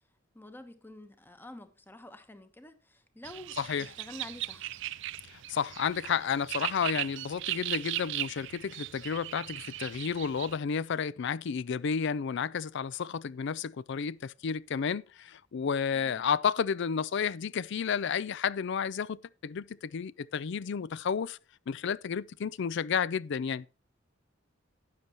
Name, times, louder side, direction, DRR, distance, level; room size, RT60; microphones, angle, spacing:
voice 1, 0.3-4.8 15.9-16.3, left 1 dB, 10° left, 1.1 m, -49 dB
sound 1, 3.2-10.6, right 14 dB, 65° right, 0.4 m, -38 dB
voice 2, 3.6-3.9 5.3-21.4 21.7-23.7, left 6 dB, 60° left, 0.4 m, -31 dB
12.0 x 8.9 x 3.0 m
head